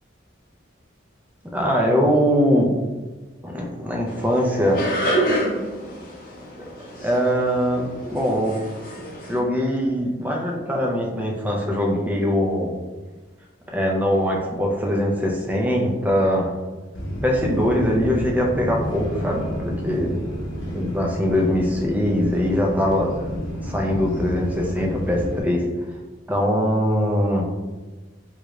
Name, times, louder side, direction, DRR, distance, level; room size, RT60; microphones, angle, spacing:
voice 1, 1.5-2.7 3.4-4.8 7.0-8.6 9.3-12.7 13.7-16.5 17.2-20.2 20.6-23.1 23.6-25.6 26.3-27.5, equal, 10° right, -1 dB, 0.4 m, -22 dB
sound 1, 4.1-9.4, right 1 dB, 45° left, 0.7 m, -28 dB
sound 2, 16.9-25.4, equal, 75° left, 0.9 m, -31 dB
3.1 x 2.4 x 3.0 m, 1.3 s
head